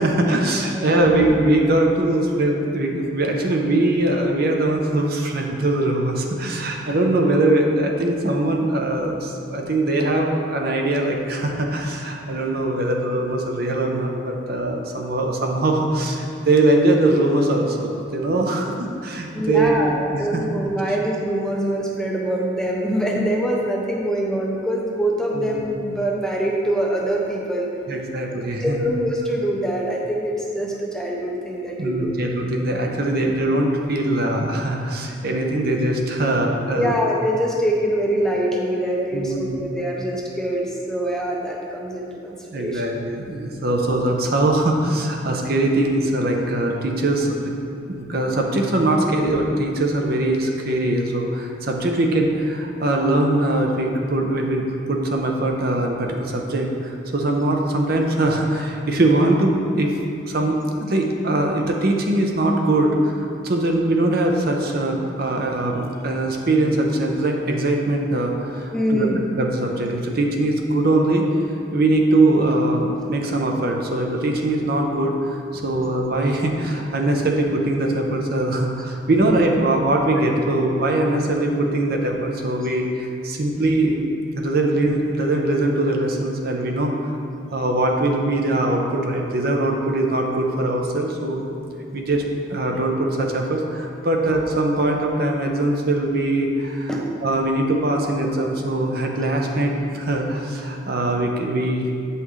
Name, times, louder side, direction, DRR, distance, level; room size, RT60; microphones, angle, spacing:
voice 1, 0.0-20.5 25.3-25.6 27.9-28.8 31.8-37.0 39.1-39.6 42.5-47.3 47.9-59.9 60.3-69.1 69.4-71.3 71.7-84.0 84.3-86.9 87.5-91.5 91.9-92.2 92.5-96.9 97.2-102.0, right 1 dB, 50° right, 2 dB, 0.6 m, -21 dB
voice 2, 19.3-27.7 28.3-32.1 36.7-42.9 68.7-69.2 96.9-97.0, equal, 5° left, -2 dB, 0.5 m, -24 dB
8.3 x 5.7 x 3.1 m, 2.5 s
head